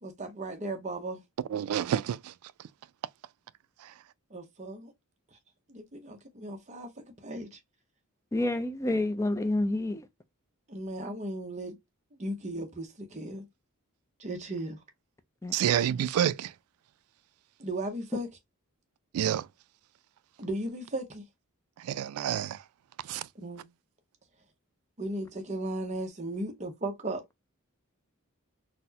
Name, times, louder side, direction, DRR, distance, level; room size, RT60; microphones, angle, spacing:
voice 1, 0.0-1.2 4.3-4.9 5.3-5.4 5.7-7.6 10.7-11.8 12.1-13.5 14.2-14.8 17.6-18.3 20.4-21.3 23.3-23.7 25.0-27.2, right 1 dB, 30° right, 0.7 m, -36 dB
voice 2, 1.5-2.3 3.8-3.9 15.5-16.5 19.1-19.5 21.8-22.6 23.0-23.3, right 10 dB, 80° right, 0.3 m, -29 dB
voice 3, 8.3-10.1 15.4-15.5, left 1 dB, 15° left, 0.3 m, -28 dB
4.1 x 2.1 x 2.7 m
head